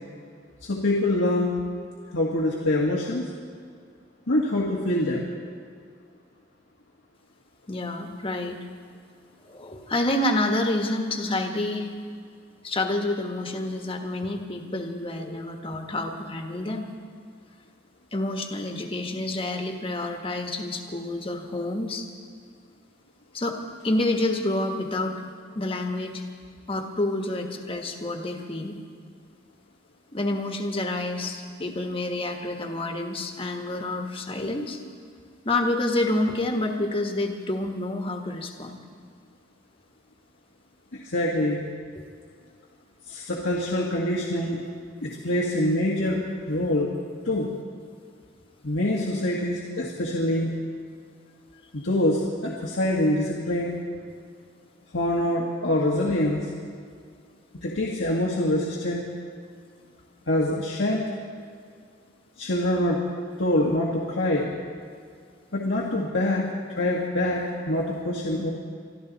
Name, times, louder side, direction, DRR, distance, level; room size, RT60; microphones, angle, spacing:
voice 1, 0.6-1.6 2.1-3.3 4.3-5.3 40.9-41.6 43.1-44.6 45.0-46.9 47.2-47.5 48.6-50.5 51.7-53.8 54.9-56.5 57.6-59.1 60.3-61.0 62.4-63.0 63.4-64.5 65.5-66.5 66.8-68.5, left 1 dB, 80° left, -4 dB, 1.7 m, -25 dB
voice 2, 7.7-8.6 9.4-11.9 12.6-16.9 18.1-22.1 23.3-25.2 25.5-26.2 26.7-28.7 30.1-34.8 35.4-38.8 41.9-42.1 45.0-45.3, left 2 dB, 30° left, 3 dB, 1.4 m, -28 dB
24.0 x 13.0 x 4.1 m, 2.2 s
head